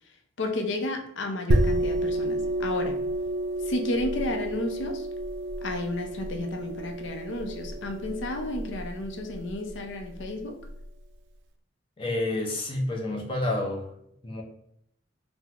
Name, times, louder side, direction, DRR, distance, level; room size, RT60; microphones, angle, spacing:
voice 1, 0.4-3.0 3.6-5.1 5.6-10.6, left 2 dB, 75° left, 4 dB, 0.5 m, -32 dB
sound 1, 1.5-10.9, right 1 dB, 70° right, 0.3 m, -30 dB
voice 2, 12.0-13.9 14.2-14.4, left 2 dB, 25° left, 1 dB, 0.5 m, -29 dB
3.5 x 2.0 x 2.8 m, 0.71 s
head